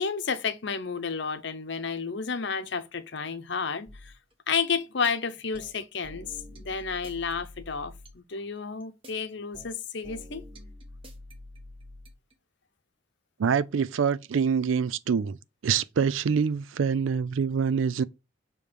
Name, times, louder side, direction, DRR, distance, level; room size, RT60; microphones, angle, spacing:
voice 1, 0.0-4.1 4.5-10.4, left 5 dB, 60° left, 0.8 m, -31 dB
sound 1, 3.9-4.2 4.8-5.1 5.5-8.3 8.8-9.1 9.5-12.3, left 1 dB, 30° right, 1.2 m, -46 dB
voice 2, 13.4-15.4 15.6-18.0, right 6 dB, 80° right, 0.4 m, -25 dB
6.9 x 3.1 x 5.1 m
head